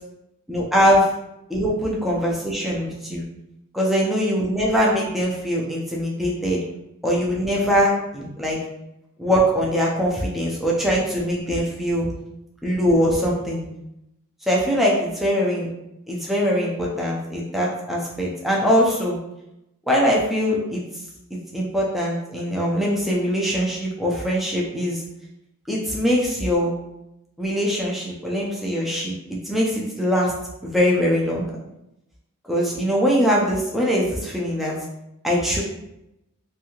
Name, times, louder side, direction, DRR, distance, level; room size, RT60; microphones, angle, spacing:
voice 1, 0.5-1.1 1.5-3.2 3.8-6.6 7.0-8.6 9.2-12.1 12.6-13.6 14.4-15.7 16.1-19.2 19.9-20.8 21.3-25.0 25.7-26.7 27.4-30.3 30.6-31.5 32.5-34.7 35.2-35.6, equal, ahead, -4 dB, 0.4 m, -22 dB
2.6 x 2.3 x 2.9 m, 0.86 s
head